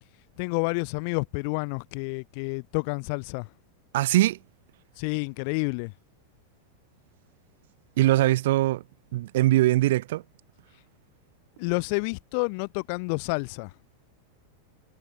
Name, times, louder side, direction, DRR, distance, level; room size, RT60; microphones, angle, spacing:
voice 1, 0.4-3.5 5.0-5.9 11.6-13.7, left 35 dB, 45° left, 5.5 m, -29 dB
voice 2, 3.9-4.4 8.0-8.8 9.1-10.2, right 16 dB, 55° right, 3.7 m, -21 dB
figure-of-eight pair, 90°, 0 cm